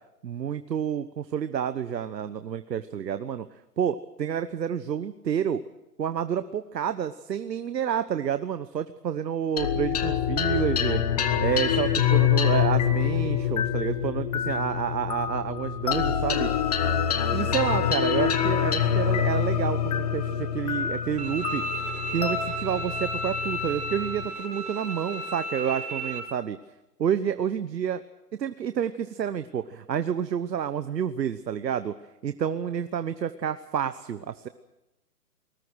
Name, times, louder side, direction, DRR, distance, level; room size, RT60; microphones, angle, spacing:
voice 1, 0.2-3.5 3.8-5.6 6.0-11.0 11.4-16.5 17.3-21.6 22.1-26.6 27.0-28.0 28.3-32.0 32.2-34.5, right 8 dB, 90° right, 11 dB, 1.2 m, -29 dB
sound 1, 9.6-24.3, left 9 dB, 25° left, 1.0 m, -26 dB
Bowed string instrument, 21.2-26.2, right 1 dB, 65° right, 7.2 m, -33 dB
23.5 x 20.0 x 6.3 m, 0.98 s
hypercardioid pair, 170°, 48 cm